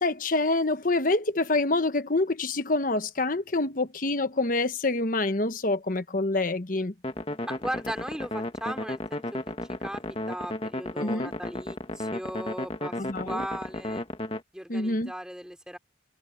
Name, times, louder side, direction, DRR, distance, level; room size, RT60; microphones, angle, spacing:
voice 1, 0.0-6.9 11.0-11.3 13.0-13.4 14.7-15.1, left 2 dB, 50° left, 1.1 m, -26 dB
sound 1, 7.0-14.4, left 1 dB, 30° left, 1.7 m, -34 dB
voice 2, 7.5-9.4 9.8-12.9 13.2-14.0 14.5-15.8, equal, 5° right, 3.0 m, -37 dB
head